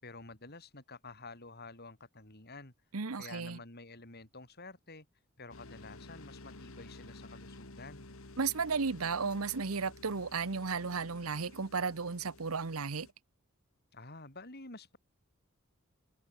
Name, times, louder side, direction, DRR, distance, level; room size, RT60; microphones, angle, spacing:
voice 1, 0.0-2.7 3.2-5.1 5.4-8.1 13.9-15.0, left 3 dB, 50° left, 5.7 m, -50 dB
voice 2, 2.9-3.6 8.4-13.1, right 5 dB, 90° right, 1.0 m, -34 dB
sound 1, 5.5-13.1, left 2 dB, 75° left, 2.3 m, -52 dB
head